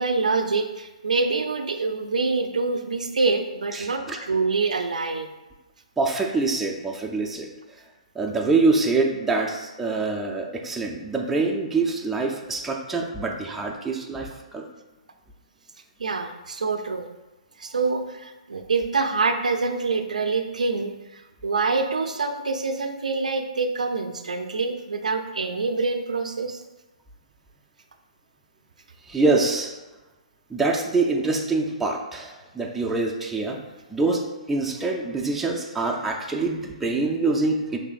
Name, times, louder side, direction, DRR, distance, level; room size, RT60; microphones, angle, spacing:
voice 1, 0.0-5.3 16.0-17.1 17.6-26.6, right 4 dB, 85° right, 6 dB, 0.4 m, -26 dB
voice 2, 3.7-4.2 6.0-7.5 8.2-14.7 29.1-29.7 30.5-33.6 33.9-37.8, right 3 dB, 5° right, -1 dB, 0.5 m, -25 dB
5.1 x 3.3 x 2.5 m, 1.1 s
hypercardioid pair, 135°, 4 cm